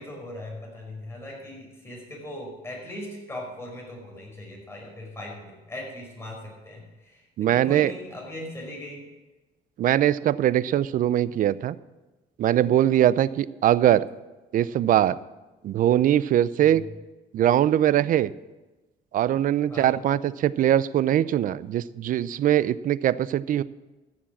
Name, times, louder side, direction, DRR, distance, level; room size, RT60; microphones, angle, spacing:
voice 1, 0.0-9.1 13.1-13.3 16.6-16.8 19.7-19.9, left 1 dB, 15° left, -1 dB, 5.3 m, -39 dB
voice 2, 7.4-7.9 9.8-11.8 12.4-14.1 14.5-15.2 15.6-16.8 17.3-18.3 19.1-23.6, right 11 dB, 55° right, 18 dB, 0.5 m, -21 dB
15.0 x 7.4 x 7.3 m, 1.1 s
cardioid pair, 110°, 17 cm